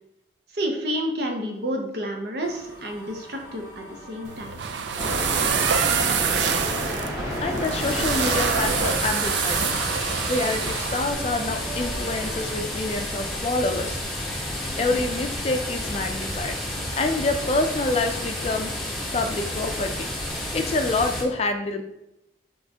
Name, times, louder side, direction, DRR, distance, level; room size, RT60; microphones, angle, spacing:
voice 1, 0.5-4.5, equal, 65° right, 3 dB, 0.8 m, -30 dB
sound 1, 2.4-12.6, equal, 15° right, 1.5 m, -33 dB
sound 2, 4.2-11.1, right 7 dB, 80° right, 0.4 m, -26 dB
voice 2, 7.4-9.7 10.3-14.0 14.8-16.5 17.0-18.7 19.1-20.1 20.5-21.8, left 2 dB, 35° left, 6 dB, 0.4 m, -27 dB
sound 3, 7.8-21.2, left 1 dB, ahead, 0.9 m, -31 dB
5.6 x 3.1 x 2.8 m, 0.87 s
head